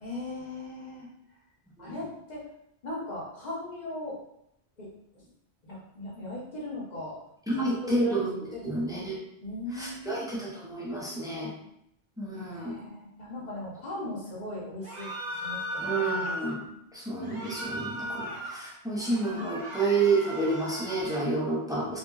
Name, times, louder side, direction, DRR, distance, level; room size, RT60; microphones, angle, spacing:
voice 1, 0.0-1.1 1.8-2.4 2.8-4.2 4.8-4.9 5.1-5.3 5.6-7.2 7.5-8.1 8.5-9.1 9.4-10.2 12.3-16.0, left 1 dB, 45° left, -5 dB, 0.9 m, -39 dB
voice 2, 7.5-8.3 8.6-9.2 9.7-11.5 12.2-12.8 15.8-16.6 16.9-22.0, right 3 dB, 5° right, -5 dB, 0.3 m, -29 dB
sound 1, 14.8-16.5 17.2-18.6 19.0-21.3, equal, 50° right, 0.6 m, -37 dB
2.7 x 2.6 x 2.3 m, 0.77 s
omnidirectional pair, 1.1 m